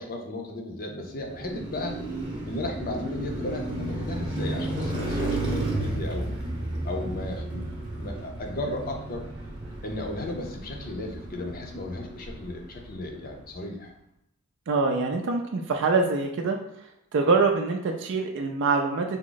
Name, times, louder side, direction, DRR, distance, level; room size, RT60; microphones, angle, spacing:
voice 1, 0.0-2.0 2.5-6.4 6.8-7.7 7.9-9.3 9.8-13.9, left 1 dB, 45° left, 2 dB, 0.6 m, -35 dB
Car passing by, 1.1-13.3, right 2 dB, 20° right, 0.7 m, -33 dB
voice 2, 14.7-16.6 17.1-19.2, right 4 dB, 60° right, 3 dB, 0.4 m, -24 dB
3.5 x 2.0 x 3.9 m, 0.82 s
head